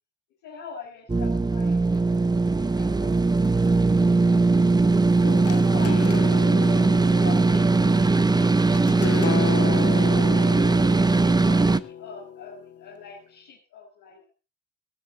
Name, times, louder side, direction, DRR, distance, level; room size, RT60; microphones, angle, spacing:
voice 1, 0.4-3.5 5.4-8.5 9.8-14.3, left 6 dB, 90° left, -2 dB, 5.3 m, -44 dB
sound 1, 1.1-11.8, right 3 dB, 15° right, 0.8 m, -20 dB
sound 2, 5.2-12.9, left 8 dB, 50° left, 1.4 m, -33 dB
19.0 x 13.5 x 3.9 m, 0.33 s
cardioid pair, 90°, 30 cm